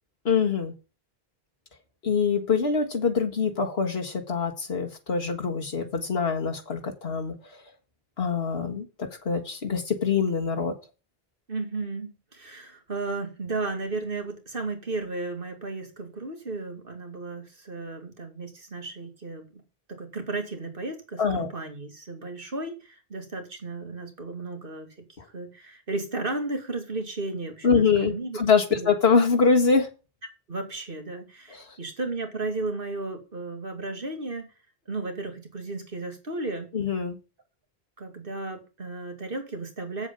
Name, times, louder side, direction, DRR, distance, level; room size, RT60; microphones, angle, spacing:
voice 1, 0.3-0.7 2.0-7.6 8.2-10.7 21.2-21.5 27.6-29.9 31.6-31.7 36.7-37.2, left 5 dB, 80° left, 2.0 m, -24 dB
voice 2, 11.5-19.6 19.9-24.9 25.2-28.4 28.7-28.9 30.5-34.5 34.9-36.7 38.0-40.1, right 3 dB, 60° right, 2.5 m, -34 dB
8.3 x 7.2 x 5.4 m
omnidirectional pair, 1.0 m